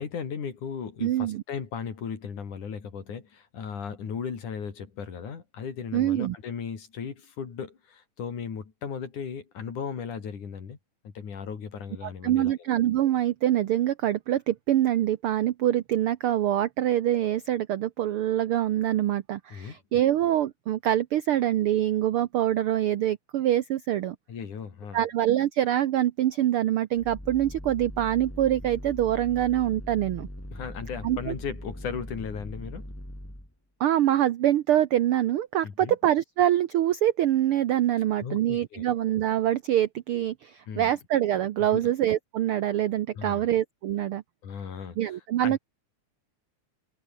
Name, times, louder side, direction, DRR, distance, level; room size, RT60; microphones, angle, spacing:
voice 1, 0.0-10.8 11.0-12.5 19.5-19.8 24.3-25.0 30.5-32.9 35.6-36.0 38.2-38.9 40.7-40.9 41.7-41.9 43.1-43.5 44.4-45.2 45.4-45.6, left 6 dB, 80° left, 4.9 m, -36 dB
voice 2, 1.0-1.4 5.9-6.3 12.0-24.2 24.9-30.3 31.0-31.3 33.8-44.2 45.0-45.6, right 12 dB, 80° right, 1.2 m, -25 dB
sound 1, 27.0-33.5, equal, 5° left, 4.1 m, -40 dB
omnidirectional pair, 3.5 m